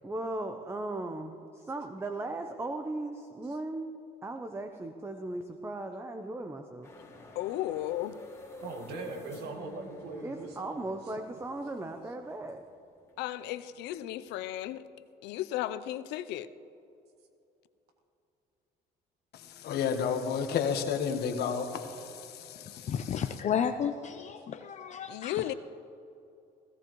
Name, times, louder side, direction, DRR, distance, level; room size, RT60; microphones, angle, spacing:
voice 1, 0.0-3.9 4.2-6.9 10.2-12.6, right 2 dB, 15° right, 7 dB, 0.7 m, -37 dB
sound 1, 6.8-14.9, left 2 dB, 15° left, 2.3 m, -50 dB
voice 2, 7.4-8.1 13.2-14.8 15.2-16.5 25.1-25.5, left 13 dB, 90° left, 14 dB, 0.5 m, -34 dB
voice 3, 8.6-10.9, right 3 dB, 75° right, 4 dB, 1.7 m, -41 dB
voice 4, 19.3-22.9, left 7 dB, 70° left, 6 dB, 1.3 m, -32 dB
voice 5, 22.6-25.5, left 8 dB, 45° left, 8 dB, 0.5 m, -33 dB
17.0 x 16.5 x 3.1 m, 2.7 s
cardioid pair, 110°, 17 cm